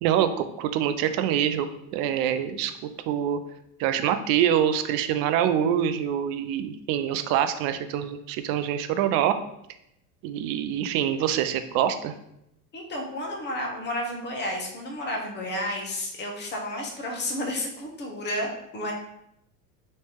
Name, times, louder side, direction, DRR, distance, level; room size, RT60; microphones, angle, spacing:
voice 1, 0.0-1.7 1.9-2.7 3.1-3.4 3.8-9.3 10.2-12.1, right 10 dB, 50° right, 10 dB, 0.5 m, -25 dB
voice 2, 12.7-18.9, left 1 dB, 20° left, 0 dB, 0.9 m, -31 dB
3.2 x 2.7 x 3.4 m, 0.78 s
supercardioid pair, 100°, 47 cm